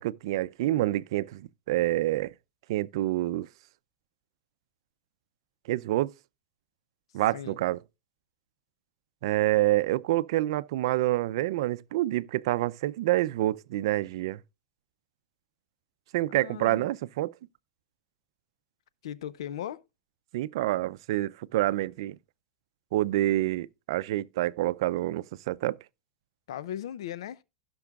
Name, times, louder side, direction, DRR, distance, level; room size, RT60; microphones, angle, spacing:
voice 1, 0.0-2.3 2.7-3.5 5.7-6.1 7.1-7.8 9.2-14.4 16.1-17.3 20.3-22.2 22.9-25.8, right 16 dB, 70° right, 0.5 m, -27 dB
voice 2, 16.3-16.9 19.0-19.8 26.5-27.4, left 10 dB, 85° left, 0.6 m, -37 dB
16.5 x 6.1 x 2.4 m
supercardioid pair, 140°, 3 cm